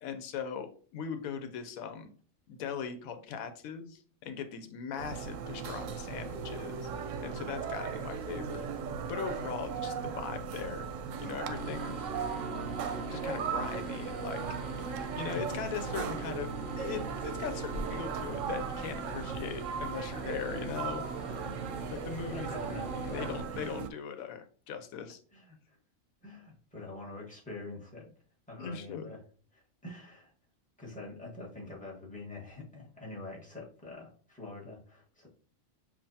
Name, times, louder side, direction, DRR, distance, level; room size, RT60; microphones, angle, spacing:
voice 1, 0.0-2.1 2.5-6.9 7.2-8.7 9.1-10.9 11.2-12.1 13.1-14.4 15.2-16.5 16.8-21.0 21.9-22.5 22.8-25.2 28.6-29.1, left 7 dB, 85° left, 8 dB, 1.1 m, -39 dB
sound 1, 5.0-23.9, right 6 dB, 70° right, 0.9 m, -37 dB
sound 2, 11.5-23.4, equal, 60° left, 1.3 m, -43 dB
voice 2, 22.3-23.7 25.3-25.8 26.2-28.1 28.5-29.2 29.5-30.3 30.8-35.3, left 2 dB, 5° left, -4 dB, 1.2 m, -45 dB
7.2 x 2.5 x 2.7 m, 0.42 s
omnidirectional pair, 1.4 m